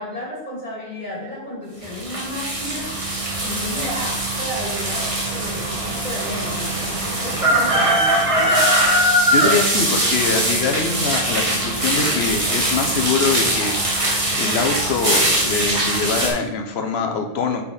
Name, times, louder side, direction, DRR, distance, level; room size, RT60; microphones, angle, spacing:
voice 1, 0.0-8.1, left 1 dB, 50° left, -6 dB, 2.7 m, -32 dB
sound 1, 1.8-16.3, right 1 dB, 30° right, 1.5 m, -21 dB
voice 2, 9.3-17.6, left 4 dB, 90° left, 3 dB, 1.1 m, -24 dB
5.6 x 4.7 x 4.9 m, 1.0 s
omnidirectional pair, 1.0 m